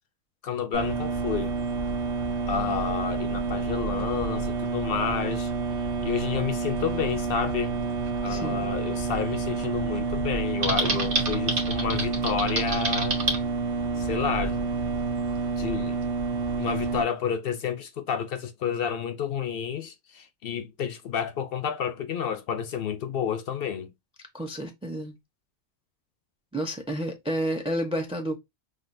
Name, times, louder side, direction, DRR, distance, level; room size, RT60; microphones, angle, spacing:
voice 1, 0.4-1.5 2.5-5.5 6.0-7.9 8.2-13.2 14.0-14.6 15.6-16.0 16.6-23.9, left 7 dB, 60° left, 0.7 m, -30 dB
sound 1, 0.7-17.0, right 4 dB, 80° right, 1.0 m, -29 dB
voice 2, 8.3-8.7 24.3-25.1 26.5-28.4, equal, 5° right, 0.5 m, -30 dB
Typing, 10.6-13.4, right 3 dB, 50° right, 1.1 m, -28 dB
5.7 x 2.6 x 2.6 m
omnidirectional pair, 1.2 m